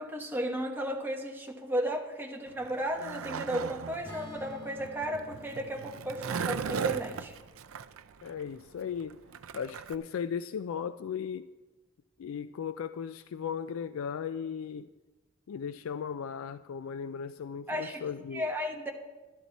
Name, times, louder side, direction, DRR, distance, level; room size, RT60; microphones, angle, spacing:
voice 1, 0.0-7.3 17.7-18.0 18.3-18.9, equal, 10° right, 1 dB, 1.1 m, -34 dB
Skateboard, 2.5-10.0, right 6 dB, 80° right, 0.4 m, -37 dB
Acoustic guitar / Strum, 4.0-8.3, left 2 dB, 15° left, 1.5 m, -50 dB
voice 2, 8.2-9.2 9.5-11.5 12.2-14.9 15.5-18.5, left 7 dB, 85° left, 13 dB, 0.3 m, -36 dB
12.5 x 12.0 x 4.1 m, 1.2 s
head